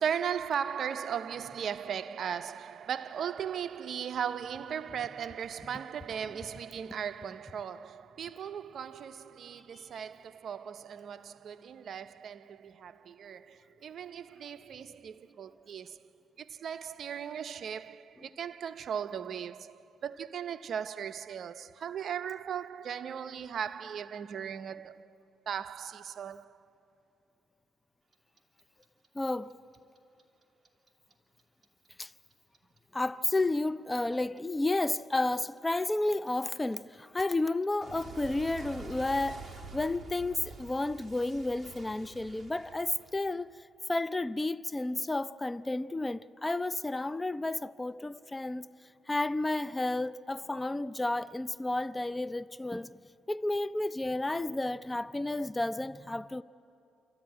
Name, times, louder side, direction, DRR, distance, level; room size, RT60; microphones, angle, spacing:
voice 1, 0.0-16.1 16.4-25.1 25.5-26.6, right 8 dB, 60° right, 0.6 m, -37 dB
Clock, 28.1-31.1 31.4-34.4 34.7-43.5, right 4 dB, 25° right, 2.8 m, -48 dB
voice 2, 29.1-29.5 32.0-32.1 32.9-39.4 39.7-43.5 43.9-48.7 49.1-53.0 53.3-56.4, left 2 dB, 15° left, 0.5 m, -31 dB
28.0 x 13.5 x 9.6 m
cardioid pair, 90°, 0 cm